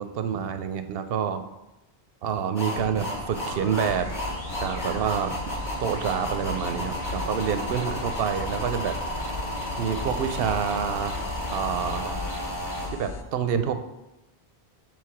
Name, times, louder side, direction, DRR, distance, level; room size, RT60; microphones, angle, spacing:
voice 1, 0.0-1.5 2.2-4.1 4.6-5.4 5.8-9.0 9.8-11.2 11.5-12.2 12.9-13.8, right 7 dB, 70° right, 9 dB, 0.7 m, -28 dB
sound 1, 2.5-12.9, equal, 20° left, 2.2 m, -33 dB
sound 2, 3.8-13.2, left 4 dB, 55° left, 0.3 m, -37 dB
4.8 x 3.8 x 5.7 m, 0.98 s
omnidirectional pair, 1.1 m